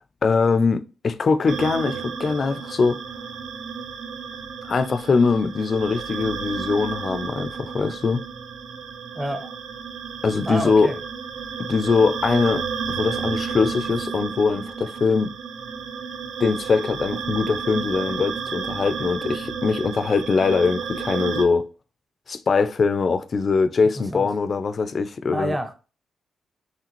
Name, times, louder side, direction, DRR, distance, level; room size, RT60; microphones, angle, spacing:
voice 1, 0.2-3.0 4.6-8.2 10.2-10.9 11.7-12.6 12.9-15.3 16.4-21.7 22.3-25.6, left 4 dB, 35° left, 0.4 m, -22 dB
sound 1, 1.5-21.4, right 6 dB, 75° right, 0.6 m, -32 dB
voice 2, 9.1-9.5 10.5-11.0 23.8-24.3 25.3-25.8, right 1 dB, 10° right, 0.6 m, -29 dB
4.9 x 3.2 x 3.0 m
wide cardioid pair, 175°, 0 cm